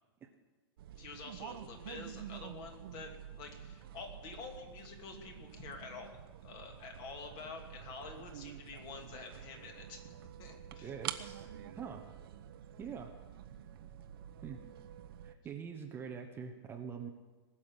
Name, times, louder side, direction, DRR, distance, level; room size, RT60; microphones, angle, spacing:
sound 1, 0.8-15.3, right 10 dB, 60° right, 1.1 m, -48 dB
voice 1, 1.0-10.1 10.4-10.9, left 4 dB, 35° left, 3 dB, 2.8 m, -48 dB
voice 2, 10.8-11.5 11.7-12.0 12.8-13.1 14.4-14.6 15.2-17.1, right 7 dB, 15° right, 4 dB, 1.0 m, -44 dB
20.0 x 7.3 x 9.9 m, 1.3 s
hypercardioid pair, 150°, 14 cm